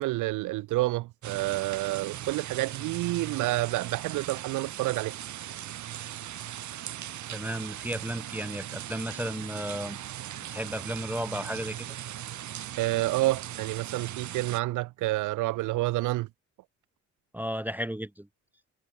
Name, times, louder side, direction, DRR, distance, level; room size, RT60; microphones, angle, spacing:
voice 1, 0.0-5.1 12.8-16.3, right 19 dB, 90° right, 0.7 m, -29 dB
sound 1, 1.2-14.6, right 12 dB, 70° right, 2.6 m, -39 dB
voice 2, 7.3-10.0 10.5-11.9 17.3-18.3, equal, 5° right, 0.6 m, -34 dB
cardioid pair, 90°, 30 cm